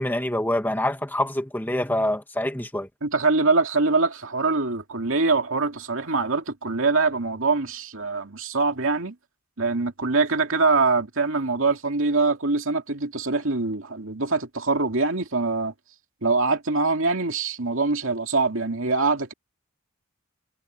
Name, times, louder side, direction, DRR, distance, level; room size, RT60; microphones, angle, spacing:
voice 1, 0.0-2.9, left 1 dB, 10° left, 1.9 m, -26 dB
voice 2, 3.0-9.2 9.6-15.7 16.2-19.3, right 3 dB, 60° right, 2.5 m, -23 dB
head